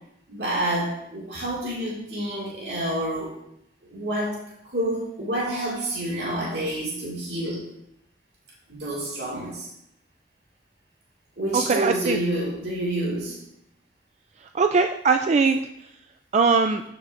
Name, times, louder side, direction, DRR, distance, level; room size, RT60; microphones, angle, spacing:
voice 1, 0.3-3.3 3.9-4.4 4.6-7.6 8.7-9.7 11.4-13.4, right 1 dB, 65° right, -5 dB, 2.2 m, -28 dB
voice 2, 11.5-12.2 14.5-15.6 16.3-16.8, right 4 dB, 40° right, 7 dB, 0.3 m, -20 dB
13.0 x 6.6 x 2.6 m, 0.76 s
head